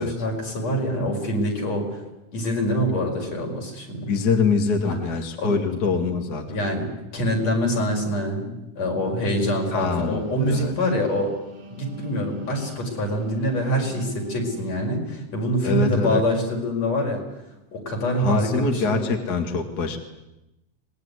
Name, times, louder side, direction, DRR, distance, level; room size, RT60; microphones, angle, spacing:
voice 1, 0.0-2.0 2.3-4.1 4.8-5.0 5.4-5.5 6.5-6.9 7.1-11.3 11.7-17.2 17.7-19.1, equal, 60° left, 1 dB, 6.4 m, -25 dB
voice 2, 4.1-6.6 9.7-10.7 15.6-16.2 18.2-20.0, left 5 dB, 35° left, 4 dB, 2.2 m, -24 dB
Wind instrument woodwind instrument, 9.5-14.8, equal, 85° right, 6.3 m, -43 dB
25.0 x 20.5 x 9.7 m, 0.94 s
omnidirectional pair, 3.3 m